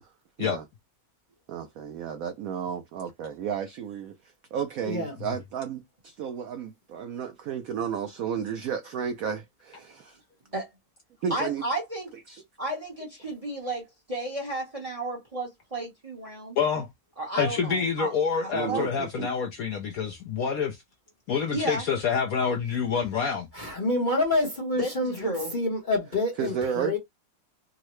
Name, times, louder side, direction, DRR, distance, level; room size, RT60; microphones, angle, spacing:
voice 1, 1.5-4.1 4.5-10.2 11.2-11.6 12.3-12.4 18.5-19.3 26.4-27.0, right 7 dB, 85° right, 0.7 m, -32 dB
voice 2, 11.3-12.1 12.6-16.6 17.2-18.1 18.4-18.9 21.5-21.8 24.8-25.5, right 1 dB, 25° right, 0.8 m, -32 dB
voice 3, 16.6-16.9 17.4-20.8 21.3-23.5, left 6 dB, 65° left, 0.9 m, -27 dB
voice 4, 23.5-25.1 25.5-27.0, left 2 dB, 35° left, 0.8 m, -27 dB
3.7 x 2.0 x 3.0 m
omnidirectional pair, 2.0 m